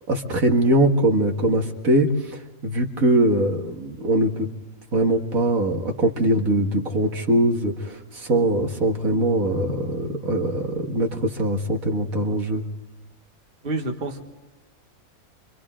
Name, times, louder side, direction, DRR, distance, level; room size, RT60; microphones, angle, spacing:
voice 1, 0.1-4.5 4.9-12.6, right 1 dB, 70° right, 3 dB, 2.3 m, -22 dB
voice 2, 13.6-14.2, right 2 dB, 40° right, 1 dB, 1.8 m, -28 dB
29.0 x 25.5 x 3.8 m, 1.1 s
omnidirectional pair, 1.5 m